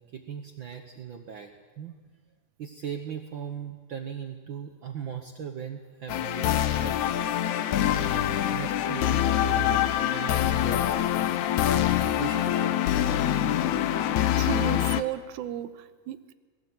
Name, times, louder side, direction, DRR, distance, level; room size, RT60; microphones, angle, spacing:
voice 1, 0.0-1.9 2.6-7.0 7.9-11.1 11.3-11.9 12.2-12.9, right 8 dB, 65° right, 5 dB, 1.2 m, -39 dB
sound 1, 6.1-15.0, left 11 dB, 75° left, 2.1 m, -25 dB
voice 2, 14.4-16.3, right 12 dB, 90° right, 11 dB, 2.3 m, -34 dB
20.5 x 16.5 x 8.0 m, 1.4 s
omnidirectional pair, 3.5 m